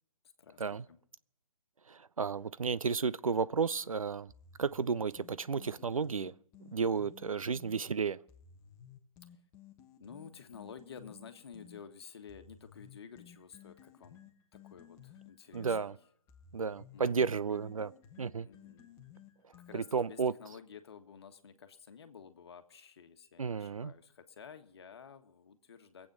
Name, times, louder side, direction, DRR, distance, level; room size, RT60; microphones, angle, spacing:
voice 1, 0.4-1.0 9.3-9.4 10.0-14.2 14.5-16.0 16.9-17.4 18.4-18.9 19.7-26.1, left 6 dB, 50° left, 1.5 m, -52 dB
voice 2, 1.9-4.3 4.6-6.3 6.7-8.2 15.5-15.9 16.5-17.9 18.2-18.5 19.7-20.3 23.4-23.9, right 5 dB, 75° right, 0.5 m, -32 dB
sound 1, 4.3-7.8 8.3-11.8 12.3-20.1, left 9 dB, 15° left, 1.2 m, -56 dB
21.5 x 8.6 x 6.2 m
figure-of-eight pair, 140°, 18 cm